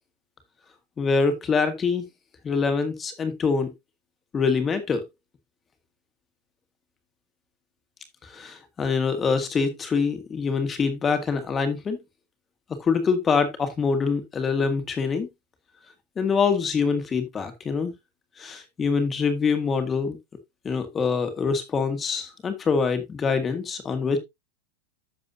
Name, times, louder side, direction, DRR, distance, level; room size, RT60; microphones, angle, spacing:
voice 1, 1.0-2.0 2.4-3.7 4.3-5.0 8.3-12.0 12.8-15.3 16.2-17.9 18.4-20.2 20.6-24.2, left 5 dB, 15° left, 1.5 m, -24 dB
11.0 x 6.8 x 2.7 m
supercardioid pair, 175°, 0 cm